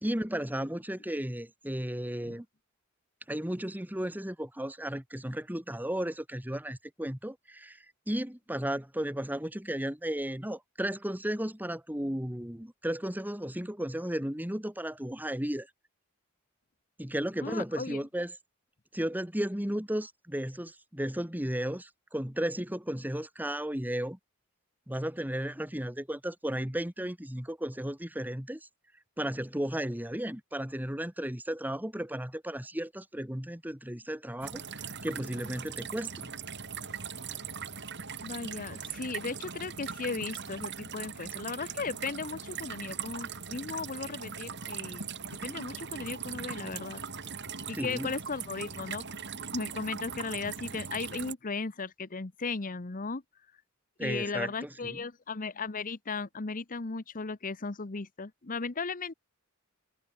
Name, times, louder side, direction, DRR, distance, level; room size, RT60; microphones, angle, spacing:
voice 1, 0.0-2.5 3.3-15.7 17.0-18.3 18.9-24.2 24.9-28.6 29.2-34.6 35.0-36.3 47.8-48.1 54.0-55.0, right 1 dB, 10° right, 2.0 m, -34 dB
voice 2, 17.4-18.0 38.2-45.1 45.4-47.0 47.7-49.0 49.5-53.2 54.0-59.1, left 4 dB, 40° left, 0.9 m, -36 dB
sound 1, 34.4-51.3, right 6 dB, 55° right, 8.0 m, -40 dB
head